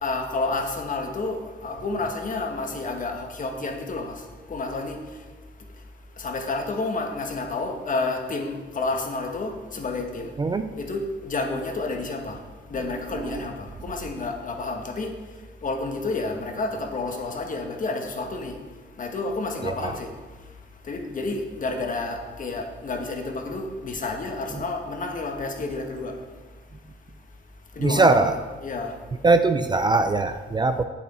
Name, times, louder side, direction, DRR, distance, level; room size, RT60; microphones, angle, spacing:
voice 1, 0.0-4.1 4.5-5.0 6.2-10.3 10.8-12.4 12.7-15.1 15.6-18.5 19.0-20.1 20.9-26.1 27.8-28.9, left 3 dB, 40° left, 3 dB, 1.5 m, -30 dB
voice 2, 27.8-28.3 29.2-30.8, right 3 dB, 20° right, 9 dB, 0.4 m, -21 dB
8.6 x 7.1 x 4.3 m, 1.3 s
cardioid pair, 90°, 20 cm